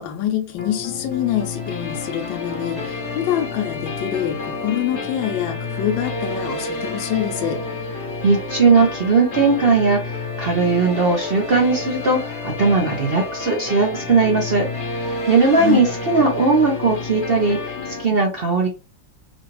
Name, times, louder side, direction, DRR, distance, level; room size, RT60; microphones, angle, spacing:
voice 1, 0.0-7.6 15.5-15.8, left 11 dB, 75° left, 1.3 m, -25 dB
sound 1, 0.6-18.0, left 3 dB, 45° left, 1.0 m, -30 dB
voice 2, 8.2-14.6 14.9-18.7, right 4 dB, 50° right, 0.7 m, -18 dB
5.0 x 2.4 x 3.2 m
omnidirectional pair, 2.2 m